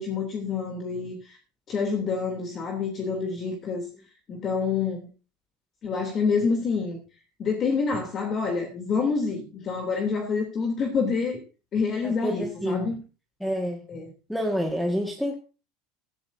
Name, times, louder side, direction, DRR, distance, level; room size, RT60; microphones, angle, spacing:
voice 1, 0.0-1.4 1.7-3.9 4.3-5.1 5.8-7.0 7.4-11.4 11.7-13.0 13.9-14.1, left 5 dB, 30° left, 3 dB, 3.1 m, -27 dB
voice 2, 12.0-12.9 13.4-13.8 14.3-15.4, equal, ahead, 3 dB, 1.8 m, -28 dB
16.0 x 13.0 x 2.7 m, 0.33 s
supercardioid pair, 145°, 0 cm